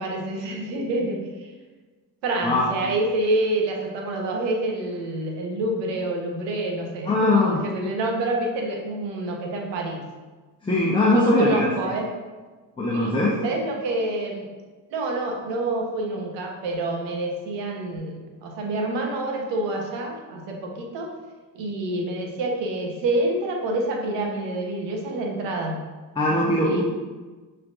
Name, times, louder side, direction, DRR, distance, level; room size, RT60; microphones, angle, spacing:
voice 1, 0.0-1.5 2.2-10.0 11.1-12.1 12.9-13.1 13.4-14.5 14.9-21.1 21.5-25.8 26.6-26.8, right 2 dB, 70° right, 1 dB, 1.1 m, -27 dB
voice 2, 2.4-2.9 7.0-7.6 10.6-11.7 12.8-13.4 26.1-26.8, left 2 dB, 10° left, -5 dB, 0.7 m, -21 dB
5.8 x 3.4 x 2.6 m, 1.3 s
supercardioid pair, 80°, 44 cm